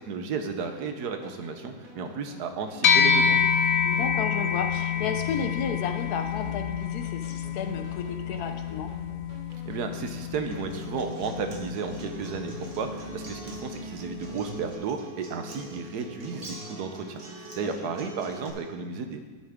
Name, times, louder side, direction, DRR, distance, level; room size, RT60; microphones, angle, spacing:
voice 1, 0.1-3.4 9.7-19.2, right 5 dB, 80° right, 6 dB, 1.4 m, -33 dB
sound 1, 0.6-13.8, equal, 60° right, 4.2 m, -49 dB
sound 2, 2.8-12.4, left 6 dB, 55° left, 0.8 m, -27 dB
voice 2, 3.8-8.9 17.6-17.9, left 5 dB, 75° left, 6 dB, 1.3 m, -33 dB
Acoustic guitar, 10.5-18.5, right 1 dB, 40° right, 1.6 m, -42 dB
11.5 x 9.1 x 3.6 m, 1.5 s
omnidirectional pair, 1.7 m